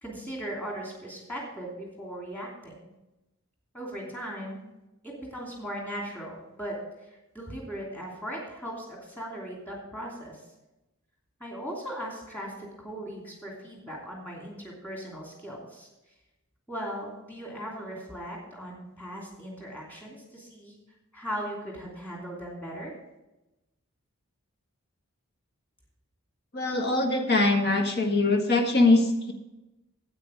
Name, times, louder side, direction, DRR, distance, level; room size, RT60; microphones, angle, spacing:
voice 1, 0.0-2.9 3.7-4.6 5.0-6.8 7.1-10.4 11.4-15.9 16.7-20.7 21.1-22.9, equal, 10° left, -2 dB, 2.8 m, -38 dB
voice 2, 26.5-29.3, left 2 dB, 50° left, 4 dB, 1.6 m, -22 dB
9.3 x 8.7 x 5.1 m, 0.95 s
head